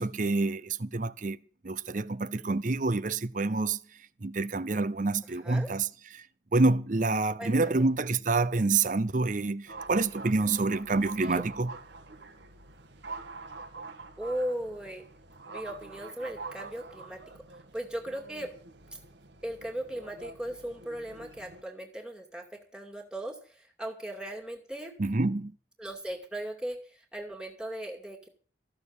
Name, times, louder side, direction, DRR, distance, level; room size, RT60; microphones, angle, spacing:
voice 1, 0.0-1.4 1.6-3.8 4.2-5.9 6.1-6.3 6.5-11.7 25.0-25.5, right 3 dB, 45° right, 0.7 m, -27 dB
voice 2, 5.3-5.7 7.4-7.9 11.2-11.4 14.2-15.0 15.5-17.2 17.5-18.5 19.4-24.9 25.8-28.3, right 1 dB, 5° right, 2.4 m, -38 dB
sound 1, 9.7-21.6, right 3 dB, 70° right, 1.6 m, -46 dB
14.5 x 6.8 x 9.7 m
head